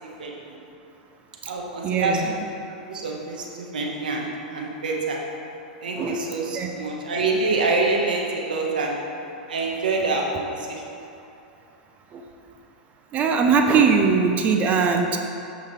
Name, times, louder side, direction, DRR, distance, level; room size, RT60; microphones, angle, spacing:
voice 1, 0.2-0.6 1.5-2.3 2.7-5.2 5.8-9.0 9.5-10.8, right 3 dB, 80° right, -1 dB, 1.4 m, -26 dB
voice 2, 1.8-2.3 5.9-6.7 12.1-12.2 13.1-15.2, right 5 dB, 35° right, 4 dB, 0.7 m, -21 dB
10.5 x 6.7 x 3.3 m, 2.8 s
hypercardioid pair, 105°, 5 cm